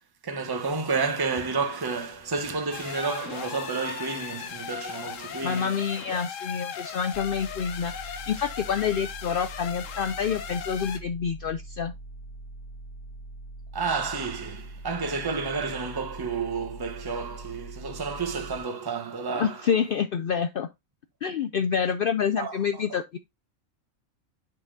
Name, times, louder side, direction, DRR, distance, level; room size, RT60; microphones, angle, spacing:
voice 1, 0.2-5.8 13.7-19.7 22.4-23.0, right 4 dB, 20° right, 1.0 m, -31 dB
sound 1, 2.7-11.0, left 8 dB, 65° left, 1.1 m, -38 dB
voice 2, 5.4-11.9 19.3-20.7 21.2-23.2, left 7 dB, 85° left, 0.4 m, -27 dB
sound 2, 7.1-18.6, right 2 dB, 40° left, 1.5 m, -43 dB
7.7 x 5.6 x 2.6 m
omnidirectional pair, 1.5 m